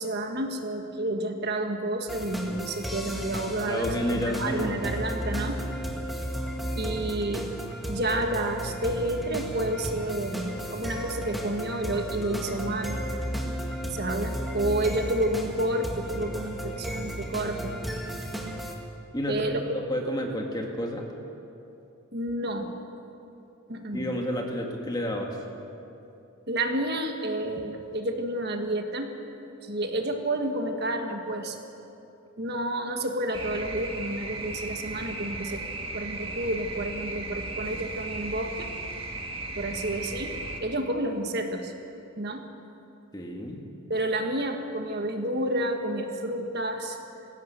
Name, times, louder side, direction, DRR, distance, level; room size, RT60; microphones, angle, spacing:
voice 1, 0.0-5.6 6.8-7.5 7.9-13.0 13.9-17.7 19.3-19.6 22.1-22.7 23.7-24.1 26.5-29.1 29.6-31.6 32.4-35.6 35.9-38.7 39.5-41.7 42.2-42.5 43.9-47.0, right 1 dB, 45° right, 4 dB, 1.5 m, -30 dB
sound 1, 2.1-18.7, equal, ahead, 1.7 m, -34 dB
voice 2, 3.7-4.8 19.1-21.0 23.9-25.4 43.1-43.6, equal, 20° left, 1 dB, 1.9 m, -30 dB
sound 2, 33.3-40.6, right 2 dB, 25° right, 1.8 m, -36 dB
20.0 x 17.0 x 8.1 m, 2.8 s
head